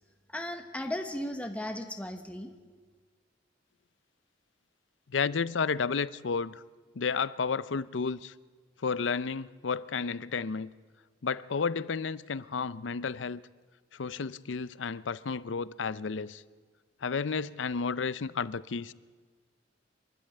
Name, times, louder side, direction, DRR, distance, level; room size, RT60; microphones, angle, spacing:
voice 1, 0.3-2.5, left 1 dB, 5° left, 1.1 m, -36 dB
voice 2, 5.1-6.6 7.0-8.3 8.8-10.7 11.2-13.4 13.9-16.4 17.0-18.9, left 5 dB, 80° left, 0.6 m, -32 dB
25.5 x 12.5 x 9.9 m
head